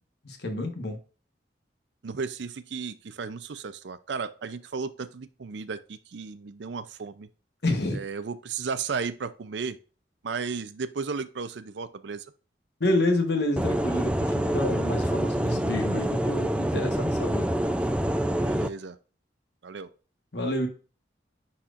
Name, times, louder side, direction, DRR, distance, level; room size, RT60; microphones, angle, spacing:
voice 1, 0.2-1.0 7.6-8.0 12.8-17.5 20.3-20.7, left 1 dB, 65° left, 5 dB, 1.2 m, -28 dB
voice 2, 2.0-7.3 7.9-9.8 10.2-12.3 18.4-19.0 19.6-19.9, right 5 dB, 75° right, 12 dB, 0.5 m, -34 dB
sound 1, 13.6-18.7, right 1 dB, 5° right, 0.3 m, -26 dB
9.9 x 4.2 x 2.5 m, 0.37 s
head